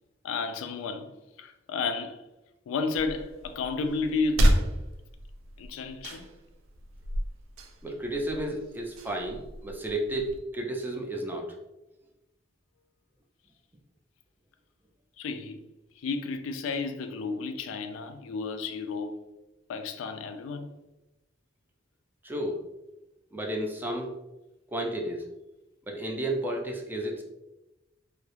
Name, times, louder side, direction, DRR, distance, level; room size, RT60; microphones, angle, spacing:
voice 1, 0.2-1.1 1.4-2.2 2.7-4.6 5.6-6.3 15.2-15.6 16.0-19.2 19.7-20.7, left 4 dB, 85° left, 0.3 m, -32 dB
sound 1, 2.9-10.4, equal, 85° right, 0.4 m, -31 dB
voice 2, 7.8-11.5 22.2-22.6 23.3-24.1 24.7-25.3 25.9-27.2, right 1 dB, 10° right, 0.3 m, -32 dB
2.3 x 2.0 x 2.9 m
head